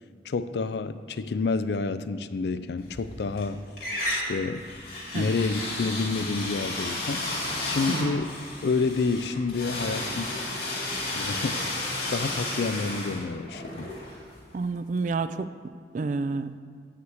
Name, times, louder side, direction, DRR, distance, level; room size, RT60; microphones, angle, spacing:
voice 1, 0.3-3.6 4.1-4.7 5.1-7.3 7.6-10.4 11.1-11.7 12.1-13.9, left 4 dB, 70° left, 13 dB, 0.4 m, -29 dB
sound 1, 2.9-3.5 3.8-14.6, left 2 dB, 55° left, 2.3 m, -33 dB
voice 2, 14.5-15.5 15.9-16.6, right 3 dB, 45° right, 11 dB, 0.3 m, -29 dB
7.9 x 5.8 x 7.6 m, 2.1 s
head